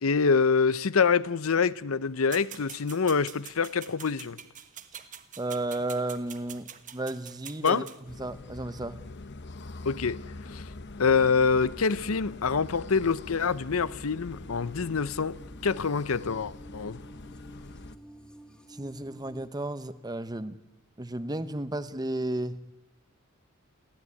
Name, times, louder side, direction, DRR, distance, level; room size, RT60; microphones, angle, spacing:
voice 1, 0.0-4.4 7.6-7.9 9.8-10.2 10.5-10.6 11.0-15.4 15.6-17.0, left 5 dB, 80° left, 0.7 m, -25 dB
sound 1, 2.3-8.0, right 9 dB, 40° right, 1.3 m, -45 dB
voice 2, 5.4-9.0 18.7-20.6 21.0-22.6, right 1 dB, 20° right, 1.0 m, -33 dB
sound 2, 8.0-18.0, left 2 dB, 55° left, 0.9 m, -44 dB
sound 3, 11.0-19.5, equal, 5° left, 1.3 m, -51 dB
29.0 x 12.5 x 9.7 m
head